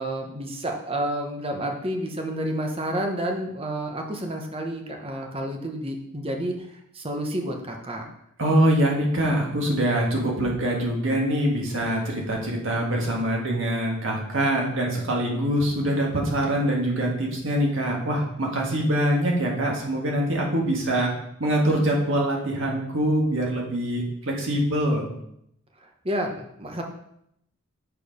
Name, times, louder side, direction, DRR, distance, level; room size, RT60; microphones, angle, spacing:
voice 1, 0.0-8.1 25.8-26.8, right 1 dB, 30° right, 2 dB, 1.0 m, -30 dB
voice 2, 8.4-21.1 21.4-25.1, right 1 dB, 70° right, -1 dB, 1.8 m, -24 dB
6.8 x 4.6 x 5.2 m, 0.75 s
head